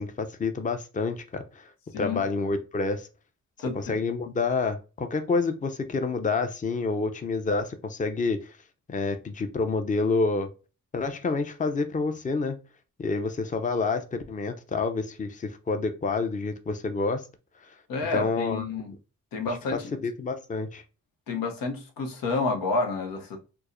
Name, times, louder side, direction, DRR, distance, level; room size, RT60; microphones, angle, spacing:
voice 1, 0.0-1.7 2.0-3.1 3.7-8.5 8.9-10.5 10.9-12.6 13.0-17.2 18.1-18.6 19.7-20.8, left 4 dB, 25° left, 0.5 m, -28 dB
voice 2, 1.9-2.2 3.6-3.9 17.9-18.9 19.3-19.9 21.3-23.4, left 3 dB, 90° left, 0.8 m, -29 dB
4.6 x 2.0 x 2.5 m
cardioid pair, 70°, 33 cm